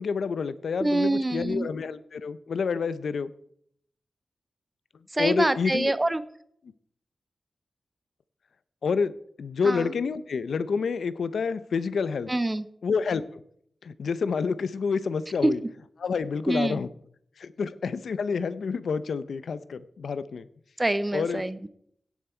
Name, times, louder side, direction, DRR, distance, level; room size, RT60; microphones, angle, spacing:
voice 1, 0.0-3.3 5.2-5.9 8.8-12.3 12.8-13.4 13.8-15.6 16.0-16.9 17.4-20.5 21.1-21.4, left 5 dB, 90° left, 15 dB, 0.6 m, -28 dB
voice 2, 0.8-1.7 5.1-6.2 9.6-9.9 12.3-12.7 15.4-15.5 16.5-16.8 20.8-21.7, right 2 dB, 15° right, 15 dB, 0.5 m, -25 dB
16.5 x 7.4 x 4.4 m, 0.67 s
wide cardioid pair, 170°, 0 cm